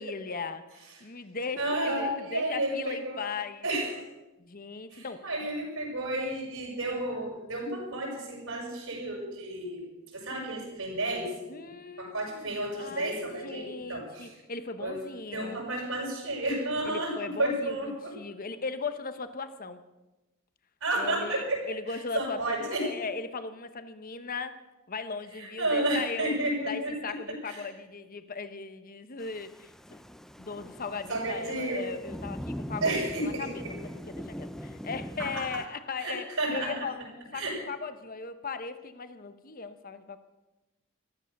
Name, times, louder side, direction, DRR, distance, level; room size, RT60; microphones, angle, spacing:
voice 1, 0.0-3.7 4.4-5.3 11.5-15.6 16.8-19.8 21.0-24.6 24.9-26.3 26.7-30.0 30.4-33.8 34.1-40.2, left 4 dB, 40° left, 11 dB, 1.0 m, -38 dB
voice 2, 1.6-3.2 3.6-4.0 4.9-9.9 10.1-11.3 12.0-14.3 14.8-15.0 15.3-18.1 20.8-21.6 21.9-22.9 25.4-26.9 27.3-27.6 31.1-31.8 32.8-33.7 35.2-35.4 36.0-36.7 37.3-37.5, right 1 dB, 70° right, -1 dB, 6.1 m, -31 dB
Thunder / Rain, 29.2-35.7, equal, ahead, 0.6 m, -41 dB
14.5 x 13.0 x 6.6 m, 1.0 s
head